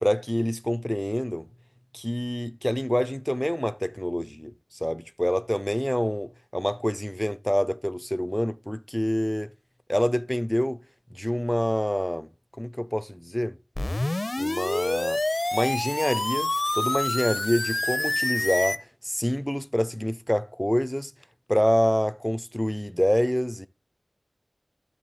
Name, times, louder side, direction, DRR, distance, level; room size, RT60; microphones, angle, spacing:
voice 1, 0.0-1.5 1.9-4.5 4.8-9.5 9.9-10.8 11.1-12.3 12.6-13.6 14.4-15.2 15.5-21.1 21.5-23.7, equal, 5° left, 0.5 m, -26 dB
sound 1, 13.8-18.8, left 2 dB, 45° left, 0.7 m, -27 dB
12.5 x 7.0 x 4.2 m
wide cardioid pair, 60°, 0 cm